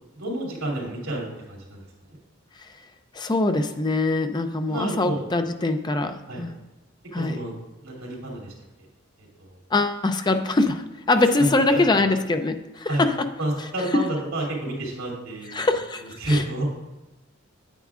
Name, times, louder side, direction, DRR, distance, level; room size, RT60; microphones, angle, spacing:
voice 1, 0.1-2.2 4.7-5.2 6.3-6.4 7.2-7.5 7.8-8.9 9.2-9.6 11.4-12.0 12.9-13.0 13.4-15.5 16.0-16.6, right 1 dB, 90° right, -2 dB, 2.9 m, -30 dB
voice 2, 3.1-6.5 7.1-7.4 9.7-13.1 15.5-16.0 16.3-16.4, left 2 dB, 20° left, 7 dB, 0.5 m, -23 dB
9.4 x 9.0 x 2.4 m, 1.0 s
head